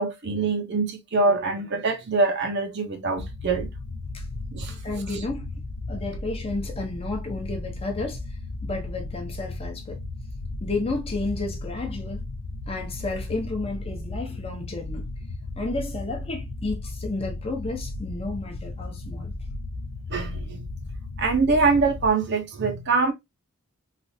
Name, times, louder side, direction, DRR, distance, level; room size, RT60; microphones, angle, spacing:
voice 1, 0.0-3.7 4.5-4.7 20.1-20.7 21.2-23.1, right 3 dB, 55° right, 0.7 m, -24 dB
sound 1, 3.2-22.1, left 2 dB, 75° left, 0.5 m, -35 dB
voice 2, 4.8-5.5 5.9-8.2 8.6-10.0 10.6-12.2 12.7-15.1 15.6-19.3, left 2 dB, 25° left, 0.7 m, -32 dB
3.3 x 2.5 x 2.6 m
head